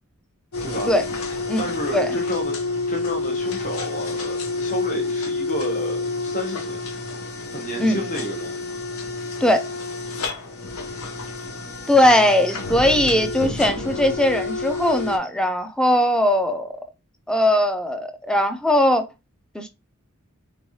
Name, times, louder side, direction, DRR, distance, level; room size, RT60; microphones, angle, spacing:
sound 1, 0.5-15.2, left 3 dB, 80° left, 0.7 m, -29 dB
voice 1, 0.6-0.9 1.6-2.6 2.9-6.8 7.5-8.6, left 1 dB, 35° left, 0.8 m, -31 dB
voice 2, 11.9-16.7 17.3-19.1 19.5-19.7, left 1 dB, 5° left, 0.3 m, -19 dB
3.4 x 3.1 x 2.7 m
head